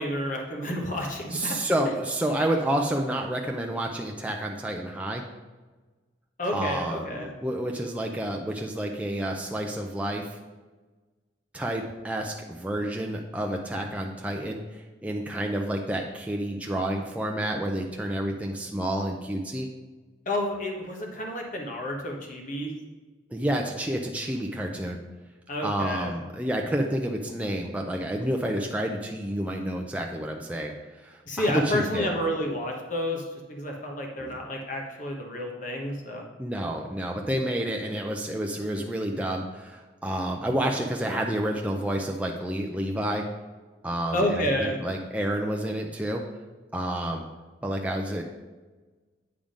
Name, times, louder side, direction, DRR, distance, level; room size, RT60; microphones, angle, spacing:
voice 1, 0.0-1.6 6.4-7.3 20.3-22.7 25.5-26.1 31.3-33.2 33.5-36.2 44.1-44.8, left 1 dB, 45° left, 1 dB, 1.2 m, -30 dB
voice 2, 1.3-5.2 6.5-10.4 11.5-19.7 23.3-25.0 25.6-30.7 31.0-32.1 34.2-34.4 36.4-43.3 43.8-46.2 46.7-47.3 47.6-48.2, right 1 dB, 5° right, 1 dB, 0.4 m, -29 dB
8.7 x 3.7 x 5.1 m, 1.3 s
head